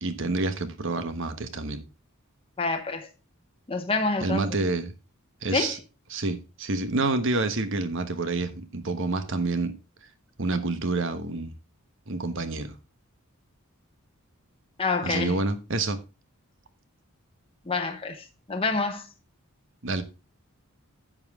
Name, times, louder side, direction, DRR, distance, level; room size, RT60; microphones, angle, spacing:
voice 1, 0.0-1.8 4.2-4.9 5.4-5.8 6.1-9.8 10.4-11.5 12.1-12.7 15.0-16.0 19.8-20.0, right 3 dB, 60° right, 1.2 m, -28 dB
voice 2, 2.6-3.1 3.7-4.5 5.5-5.8 14.8-15.4 17.7-19.0, left 3 dB, 25° left, 0.9 m, -27 dB
10.5 x 7.6 x 3.6 m
head